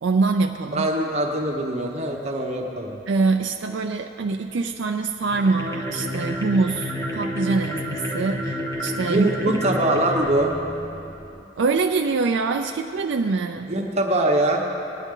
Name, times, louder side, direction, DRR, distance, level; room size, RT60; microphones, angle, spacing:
voice 1, 0.0-0.9 3.1-9.6 11.6-13.7, right 4 dB, 65° right, 4 dB, 0.4 m, -24 dB
voice 2, 0.7-3.0 9.0-10.5 13.7-14.6, right 1 dB, 35° right, 0 dB, 1.0 m, -23 dB
sound 1, 5.2-11.5, left 1 dB, 15° left, 0.9 m, -30 dB
20.0 x 9.1 x 3.7 m, 2.8 s
head